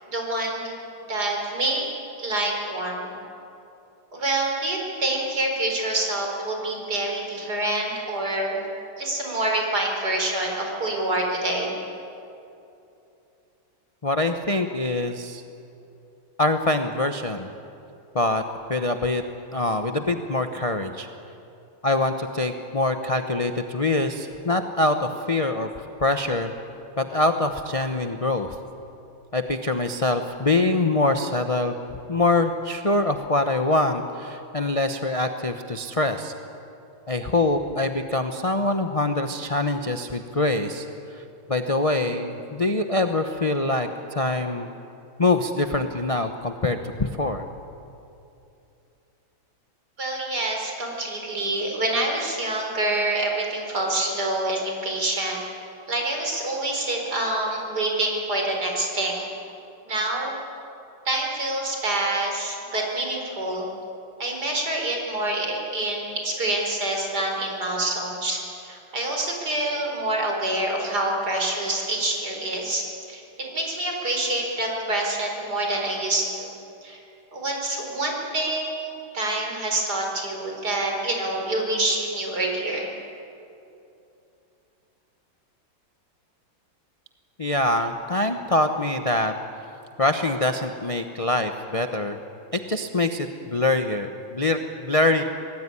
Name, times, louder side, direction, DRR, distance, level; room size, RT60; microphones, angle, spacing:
voice 1, 0.1-0.7 1.1-1.8 2.2-3.1 4.1-8.6 9.0-11.8 50.0-55.4 55.9-59.3 59.9-60.3 61.0-63.7 64.2-76.5 76.8-77.0 77.3-82.9, right 1 dB, 50° right, 0 dB, 5.0 m, -26 dB
voice 2, 14.0-15.4 16.4-17.5 18.1-18.4 18.7-19.2 19.5-21.1 21.8-25.7 26.0-26.5 27.0-28.5 29.3-31.8 32.1-36.3 37.1-40.9 41.5-44.7 45.2-47.4 87.4-89.3 90.0-92.2 92.5-95.2, left 2 dB, 30° left, 6 dB, 0.6 m, -24 dB
25.5 x 19.0 x 9.9 m, 2.8 s
omnidirectional pair, 2.1 m